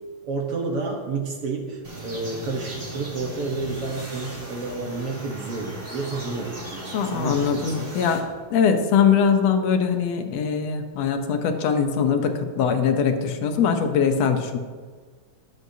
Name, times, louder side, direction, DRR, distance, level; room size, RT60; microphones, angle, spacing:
voice 1, 0.2-7.9, right 3 dB, 60° right, 0 dB, 1.8 m, -30 dB
sound 1, 1.8-8.2, right 1 dB, 30° right, 3.2 m, -37 dB
voice 2, 6.9-8.2 8.5-14.6, left 6 dB, 65° left, 6 dB, 1.9 m, -22 dB
20.5 x 7.7 x 2.8 m, 1.5 s
omnidirectional pair, 3.5 m